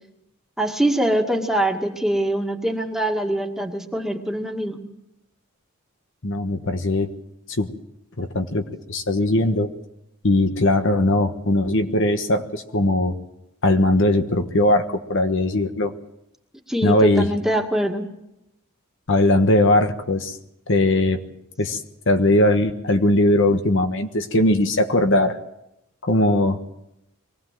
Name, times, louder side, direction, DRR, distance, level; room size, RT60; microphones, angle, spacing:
voice 1, 0.6-4.8 16.7-18.1, right 1 dB, ahead, 2 dB, 2.1 m, -23 dB
voice 2, 6.2-7.1 7.6-7.7 8.2-8.6 8.9-9.7 10.2-13.1 13.6-15.9 16.8-17.3 19.1-20.4 20.7-21.2 21.6-21.8 22.1-25.4 26.0-26.6, left 1 dB, 60° left, 6 dB, 1.4 m, -19 dB
23.5 x 17.5 x 7.7 m, 0.85 s
head